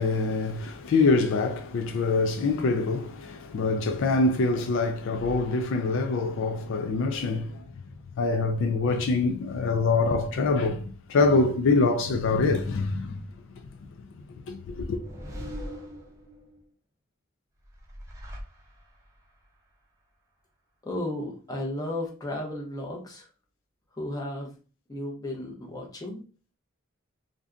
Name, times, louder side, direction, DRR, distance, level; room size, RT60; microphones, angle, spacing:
voice 1, 0.0-7.7 8.2-13.2 14.5-15.0, left 3 dB, 65° left, 0.4 m, -25 dB
sound 1, 14.6-16.6 17.6-19.1, equal, 15° right, 0.7 m, -41 dB
voice 2, 20.8-23.2 24.0-24.5 24.9-26.3, left 1 dB, 20° left, 0.8 m, -34 dB
2.6 x 2.3 x 3.5 m
head